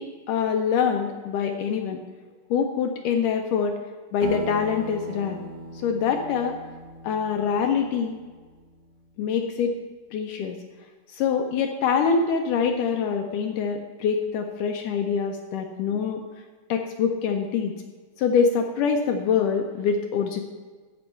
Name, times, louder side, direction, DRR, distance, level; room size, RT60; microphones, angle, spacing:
voice 1, 0.0-2.0 2.5-3.8 4.1-5.4 5.8-6.6 7.0-8.2 9.2-9.7 10.1-10.6 11.1-16.2 16.7-17.7 18.2-20.4, left 6 dB, 75° left, 4 dB, 2.0 m, -24 dB
Acoustic guitar, 4.2-9.1, right 3 dB, 85° right, 1.3 m, -39 dB
15.0 x 6.2 x 4.5 m, 1.4 s
omnidirectional pair, 4.1 m